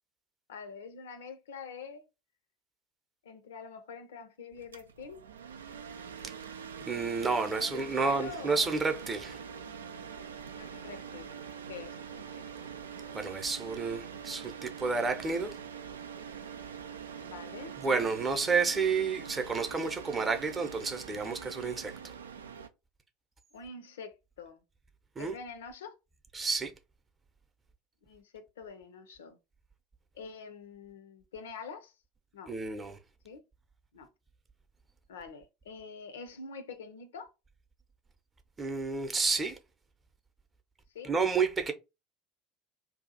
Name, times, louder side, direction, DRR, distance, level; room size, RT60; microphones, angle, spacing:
voice 1, 0.5-2.1 3.2-5.2 7.5-8.8 10.5-11.3 11.7-12.5 17.1-17.8 23.5-24.6 25.2-26.0 28.1-29.4 30.1-31.9 32.3-32.5 33.2-33.4 33.9-34.1 35.1-37.3 40.9-41.1, left 5 dB, 65° left, 0.5 m, -45 dB
sound 1, 4.5-22.7, right 7 dB, 75° right, 0.3 m, -44 dB
voice 2, 6.9-9.4 13.1-15.6 17.8-22.1 25.2-25.4 26.3-26.7 32.5-33.0 38.6-39.6 41.0-41.7, right 4 dB, 20° right, 0.7 m, -30 dB
2.7 x 2.3 x 3.9 m
figure-of-eight pair, 70°, 0 cm